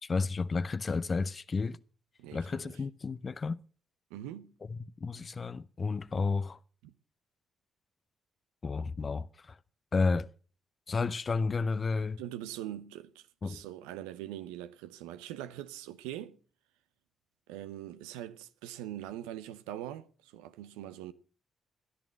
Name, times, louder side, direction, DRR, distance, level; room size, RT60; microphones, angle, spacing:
voice 1, 0.0-1.8 2.3-3.6 5.0-6.6 8.6-9.6 9.9-10.3 10.9-12.2 13.4-13.6, left 4 dB, 45° left, 0.6 m, -31 dB
voice 2, 2.2-2.8 4.1-4.6 6.8-6.9 12.2-16.4 17.5-21.1, right 12 dB, 85° right, 0.7 m, -42 dB
14.0 x 10.5 x 6.3 m
hypercardioid pair, 45°, 0 cm